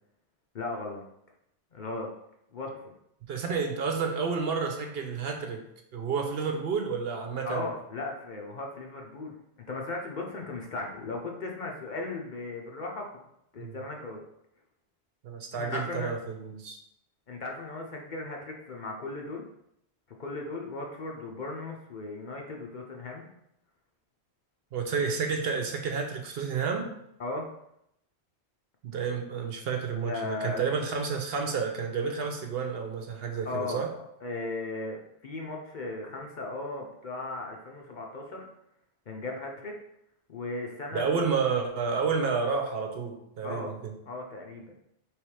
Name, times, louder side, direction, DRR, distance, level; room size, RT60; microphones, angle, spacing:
voice 1, 0.5-1.0 1.7-2.1 2.5-2.9 7.4-9.3 9.7-13.1 13.5-14.2 15.5-16.1 17.3-19.4 20.2-23.3 27.2-27.5 30.1-30.6 33.5-33.8 34.2-38.5 39.1-39.8 40.3-41.2 43.4-43.7 44.1-44.7, left 3 dB, 50° left, 0 dB, 0.8 m, -36 dB
voice 2, 3.3-5.6 5.9-7.7 13.6-13.8 15.2-16.8 24.7-26.9 28.8-33.9 40.9-43.9, right 5 dB, 65° right, 4 dB, 0.8 m, -30 dB
3.3 x 3.1 x 4.7 m, 0.77 s
omnidirectional pair, 1.1 m